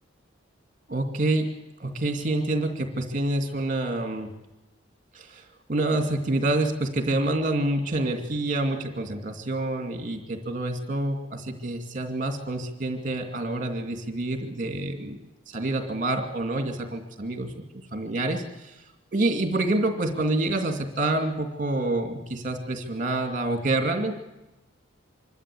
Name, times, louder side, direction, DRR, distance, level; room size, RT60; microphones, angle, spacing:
voice 1, 0.9-1.5 1.8-4.3 5.1-15.2 15.5-17.5 17.9-18.7 19.1-24.1, right 2 dB, 40° right, 5 dB, 2.5 m, -27 dB
25.5 x 12.5 x 8.5 m, 0.97 s
head